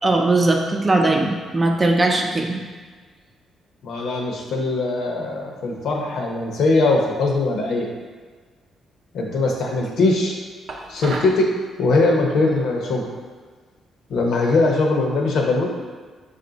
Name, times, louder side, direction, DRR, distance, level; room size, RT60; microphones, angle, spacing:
voice 1, 0.0-2.6, right 2 dB, 25° right, 1 dB, 0.6 m, -19 dB
voice 2, 3.8-7.9 9.1-10.4 10.9-11.5 11.8-13.1 14.1-15.7, left 2 dB, 75° left, 0 dB, 0.8 m, -21 dB
sound 1, 10.7-11.4, right 2 dB, 70° right, 0.6 m, -31 dB
5.2 x 2.5 x 3.9 m, 1.5 s
cardioid pair, 90°, 0 cm